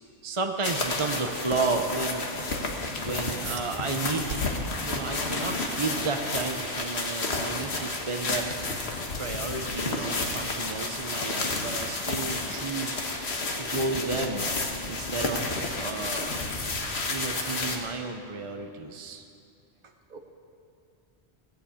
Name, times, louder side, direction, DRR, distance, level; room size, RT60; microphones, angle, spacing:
voice 1, 0.2-2.3 3.0-4.4 4.8-8.5 9.2-13.1 13.6-14.5 14.9-16.3 17.0-19.2, right 3 dB, 35° right, 4 dB, 0.7 m, -32 dB
sound 1, 0.6-17.8, left 2 dB, 70° left, 1.6 m, -31 dB
sound 2, 3.3-13.3, right 5 dB, 85° right, 1.2 m, -47 dB
voice 2, 16.8-17.4 20.1-20.2, right 4 dB, 50° right, 5 dB, 1.2 m, -49 dB
17.0 x 7.9 x 8.5 m, 2.6 s
omnidirectional pair, 1.1 m